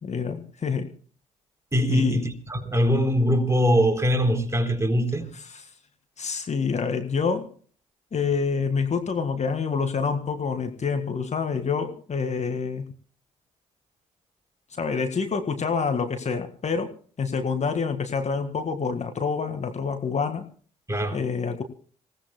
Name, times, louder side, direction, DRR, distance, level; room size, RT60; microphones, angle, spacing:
voice 1, 0.0-0.9 1.9-2.2 5.5-5.6 6.2-7.5 8.1-12.9 14.8-20.5 21.1-21.6, left 5 dB, 45° left, 1.8 m, -27 dB
voice 2, 1.7-5.3 20.9-21.2, equal, 15° right, 4.0 m, -22 dB
27.5 x 17.5 x 2.2 m
hypercardioid pair, 45°, 17 cm